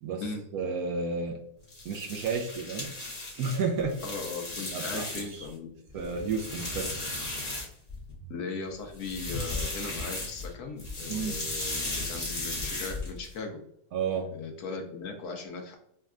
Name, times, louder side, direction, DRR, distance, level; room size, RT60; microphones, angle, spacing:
voice 1, 0.5-1.4 1.8-2.9 3.4-4.0 4.7-5.1 5.9-6.9 11.1-11.4 13.9-14.3, right 4 dB, 70° right, 2 dB, 1.0 m, -31 dB
sound 1, 1.6-5.5 5.9-8.1 8.9-10.5 10.8-13.3, left 2 dB, 30° left, 0.9 m, -36 dB
voice 2, 4.0-5.7 8.3-13.6 14.3-15.8, left 4 dB, 70° left, 3 dB, 1.1 m, -38 dB
5.2 x 2.2 x 2.4 m, 0.72 s
omnidirectional pair, 1.9 m